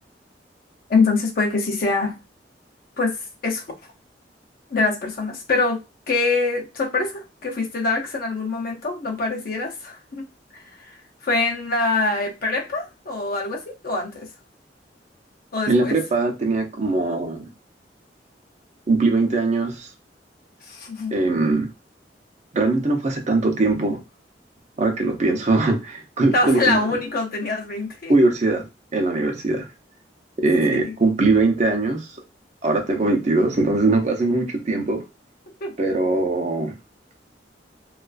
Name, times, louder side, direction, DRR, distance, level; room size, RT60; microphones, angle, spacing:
voice 1, 0.9-2.2 3.0-3.7 4.7-5.8 6.1-14.3 15.5-16.0 20.6-21.1 26.3-28.1 30.7-30.9 35.6-35.7, left 3 dB, 55° left, 0.5 m, -24 dB
voice 2, 15.7-17.5 18.9-19.9 21.1-21.7 22.5-24.0 24.8-26.8 28.1-28.7 28.9-29.7 30.4-32.1 32.6-35.0 35.8-36.7, right 3 dB, 40° right, 0.5 m, -21 dB
2.3 x 2.3 x 2.3 m
head